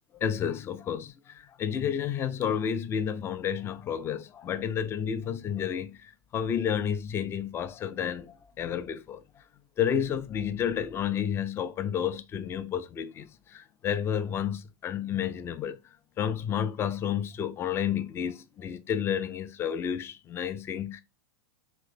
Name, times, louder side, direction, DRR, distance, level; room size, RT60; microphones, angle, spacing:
voice 1, 0.2-9.2 9.8-15.8 16.2-21.0, left 8 dB, 20° left, 0.3 m, -31 dB
3.0 x 2.9 x 2.6 m
hypercardioid pair, 105°, 12 cm